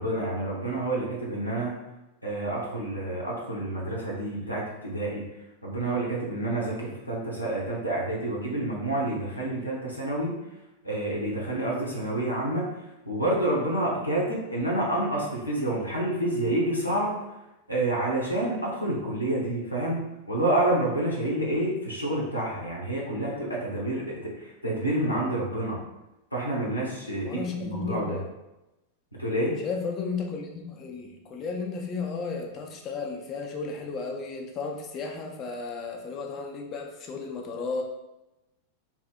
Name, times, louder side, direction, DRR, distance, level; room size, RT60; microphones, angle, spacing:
voice 1, 0.0-1.8 2.2-5.3 5.6-10.4 10.8-12.7 13.0-17.2 17.7-25.8 26.3-28.2 29.2-29.6, right 1 dB, 85° left, -4 dB, 0.6 m, -28 dB
voice 2, 27.2-28.3 29.6-37.8, left 4 dB, 35° left, 2 dB, 0.5 m, -34 dB
2.7 x 2.5 x 3.5 m, 0.97 s
figure-of-eight pair, 90°, 0 cm